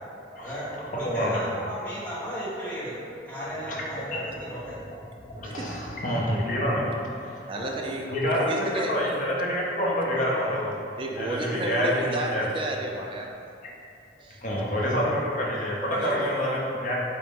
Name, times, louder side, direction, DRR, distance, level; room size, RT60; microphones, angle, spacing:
voice 1, 0.4-3.0 3.3-4.8 7.5-7.8, equal, 10° left, -11 dB, 1.1 m, -35 dB
voice 2, 1.0-1.4 3.6-4.3 5.3-6.9 7.1-7.5 8.1-10.7 11.1-12.5 14.4-17.0, equal, 45° left, -4 dB, 0.7 m, -27 dB
voice 3, 7.5-8.9 11.0-13.4 14.2-14.4 15.9-16.2, right 1 dB, 30° right, 1 dB, 0.3 m, -32 dB
3.9 x 2.8 x 3.5 m, 2.5 s
head